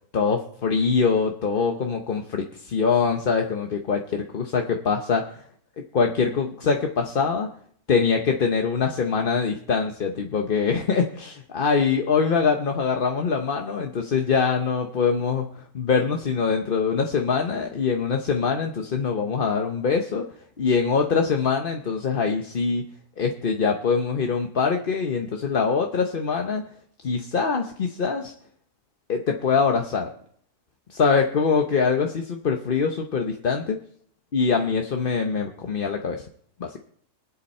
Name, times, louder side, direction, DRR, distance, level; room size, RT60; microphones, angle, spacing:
voice 1, 0.1-5.2 5.9-7.5 7.9-15.5 15.7-20.2 20.6-22.8 23.2-26.6 27.0-28.3 29.1-30.1 30.9-33.8 34.3-36.2 36.6-36.8, left 5 dB, 40° left, 3 dB, 0.9 m, -23 dB
24.0 x 8.2 x 4.3 m, 0.62 s
omnidirectional pair, 1.6 m